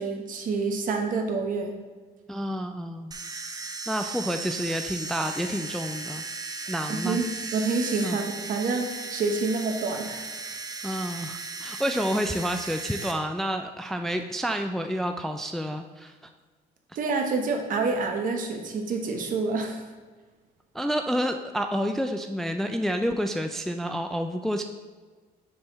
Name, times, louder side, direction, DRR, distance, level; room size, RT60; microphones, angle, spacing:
voice 1, 0.0-1.7 6.9-7.2 7.5-10.3 16.9-19.8, right 4 dB, 55° right, 4 dB, 1.1 m, -28 dB
voice 2, 2.3-3.1 3.9-6.2 6.7-7.2 8.0-8.2 10.8-16.3 20.7-24.6, equal, ahead, 6 dB, 0.3 m, -29 dB
sound 1, 3.1-13.1, right 3 dB, 20° right, 0.7 m, -36 dB
6.4 x 4.5 x 4.0 m, 1.4 s
cardioid pair, 110°, 17 cm